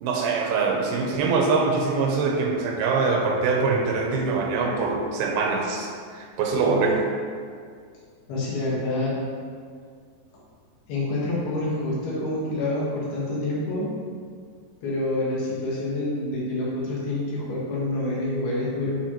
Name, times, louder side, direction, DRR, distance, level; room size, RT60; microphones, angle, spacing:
voice 1, 0.0-7.0, right 4 dB, 85° right, 1 dB, 2.7 m, -23 dB
voice 2, 8.3-9.1 10.9-13.9 14.8-19.0, left 2 dB, 80° left, -6 dB, 3.4 m, -27 dB
9.1 x 4.7 x 3.0 m, 2.1 s
omnidirectional pair, 4.4 m